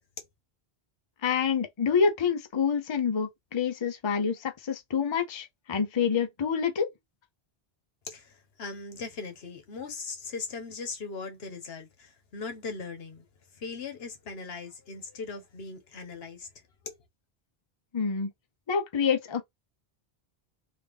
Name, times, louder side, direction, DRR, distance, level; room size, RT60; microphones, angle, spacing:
voice 1, 1.2-6.9 17.9-18.3 18.7-19.4, left 6 dB, 35° left, 0.5 m, -27 dB
voice 2, 8.0-13.2 13.5-16.5 16.8-16.9, left 4 dB, 75° left, 1.2 m, -39 dB
3.3 x 2.5 x 3.4 m
omnidirectional pair, 1.1 m